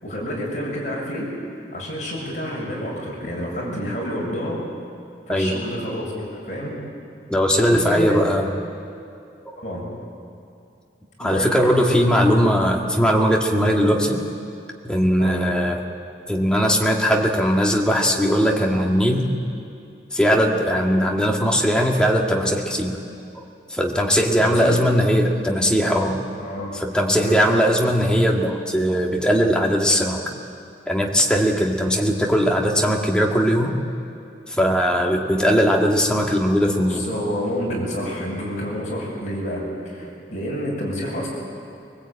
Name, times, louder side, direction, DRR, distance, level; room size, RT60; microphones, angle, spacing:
voice 1, 0.0-4.6 5.3-6.8 7.6-8.2 9.6-9.9 11.2-12.2 15.2-15.5 24.4-24.8 26.4-26.7 27.1-27.4 36.7-41.3, equal, 40° left, -3 dB, 6.8 m, -29 dB
voice 2, 7.3-8.5 11.2-14.2 14.8-15.8 16.3-19.3 20.1-23.0 23.7-26.2 26.8-30.3 30.9-33.8 34.5-37.1, equal, 5° left, -1 dB, 1.9 m, -19 dB
22.0 x 20.0 x 8.8 m, 2.5 s
head